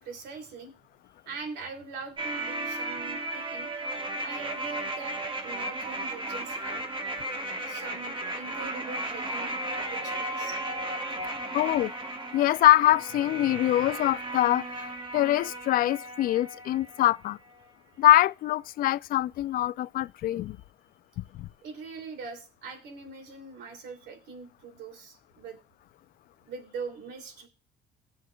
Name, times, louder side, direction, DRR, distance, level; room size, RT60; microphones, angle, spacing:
voice 1, 0.0-0.7 1.2-3.9 4.2-7.0 7.5-10.6 21.6-25.6 26.5-27.5, right 4 dB, 85° right, 2.8 m, -42 dB
sound 1, 2.2-17.2 17.5-17.6, right 1 dB, 30° right, 1.3 m, -35 dB
voice 2, 11.5-11.9 12.3-17.4 18.0-20.6 21.2-21.5, left 14 dB, 60° left, 0.4 m, -24 dB
19.0 x 6.4 x 2.3 m
cardioid pair, 110°, 17 cm